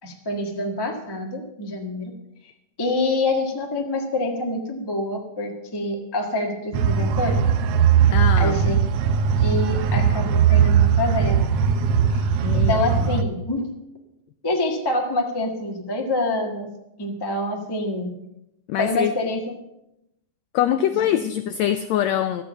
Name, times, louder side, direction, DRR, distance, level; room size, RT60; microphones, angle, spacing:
voice 1, 0.0-2.1 2.8-7.4 8.4-8.8 9.4-11.5 12.1-12.2 12.5-13.7 14.4-16.7 17.0-18.1 18.8-19.4, left 2 dB, 20° left, 2 dB, 0.5 m, -26 dB
sound 1, 6.7-13.2, right 7 dB, 85° right, 1.3 m, -19 dB
voice 2, 8.1-8.6 12.4-12.8 18.7-19.1 20.5-22.4, left 11 dB, 80° left, 9 dB, 1.6 m, -23 dB
13.0 x 8.6 x 7.0 m, 0.84 s
omnidirectional pair, 3.7 m